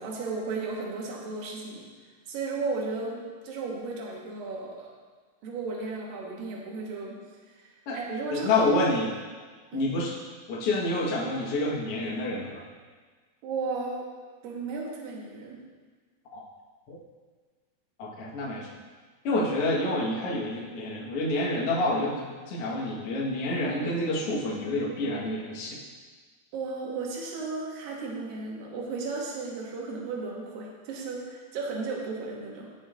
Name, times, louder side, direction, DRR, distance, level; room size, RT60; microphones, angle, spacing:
voice 1, 0.0-1.9 2.3-4.9 5.4-7.6 7.9-8.6 9.7-9.9 13.4-14.1 14.4-15.6 26.5-32.7, right 3 dB, 65° right, -2 dB, 2.7 m, -34 dB
voice 2, 8.3-9.1 9.7-10.1 10.5-12.6 16.3-16.4 16.9-17.0 18.0-18.7 19.2-25.8, left 2 dB, 65° left, -5 dB, 1.5 m, -28 dB
17.0 x 6.1 x 2.5 m, 1.5 s
omnidirectional pair, 4.9 m